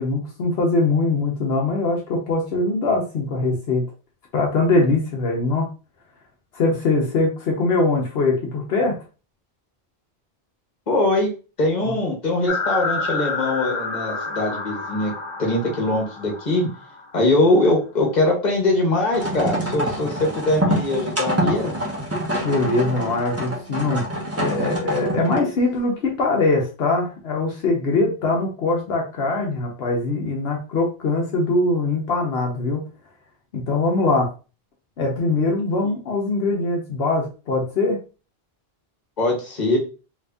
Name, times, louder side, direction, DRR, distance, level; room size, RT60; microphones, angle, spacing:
voice 1, 0.0-3.8 4.3-5.7 6.5-9.0 11.8-12.0 19.7-20.0 22.4-24.0 24.4-32.8 33.5-34.3 35.0-38.0, left 3 dB, 75° left, 0 dB, 1.0 m, -22 dB
voice 2, 10.9-11.3 11.6-15.1 15.4-16.6 17.1-21.8 39.2-39.8, left 2 dB, 45° left, 0 dB, 1.2 m, -21 dB
sound 1, 12.5-17.2, left 4 dB, 30° left, 0.9 m, -29 dB
sound 2, 19.1-25.6, equal, 15° right, 0.8 m, -26 dB
2.8 x 2.6 x 3.4 m, 0.34 s
omnidirectional pair, 1.0 m